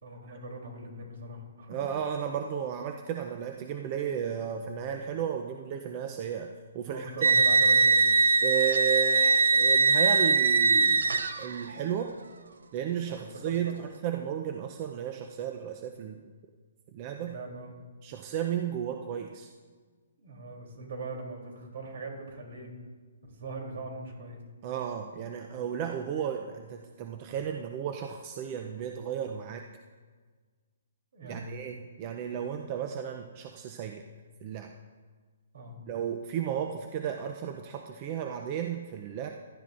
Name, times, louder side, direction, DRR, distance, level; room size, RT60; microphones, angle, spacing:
voice 1, 0.0-1.8 6.8-8.0 13.1-13.8 17.2-17.8 20.2-22.7 23.3-24.4 26.2-26.3 31.1-31.6 35.5-35.7, right 2 dB, 65° right, 1 dB, 3.2 m, -41 dB
voice 2, 1.7-6.5 6.7-7.1 8.4-11.1 11.4-12.1 12.7-16.2 16.9-17.3 18.0-19.5 24.6-29.7 31.2-34.0 34.4-34.7 35.9-39.3, right 8 dB, 30° right, 5 dB, 0.5 m, -34 dB
sound 1, 7.2-11.7, right 3 dB, 90° right, 0.7 m, -22 dB
16.0 x 12.0 x 2.5 m, 1.5 s
hypercardioid pair, 165°, 0 cm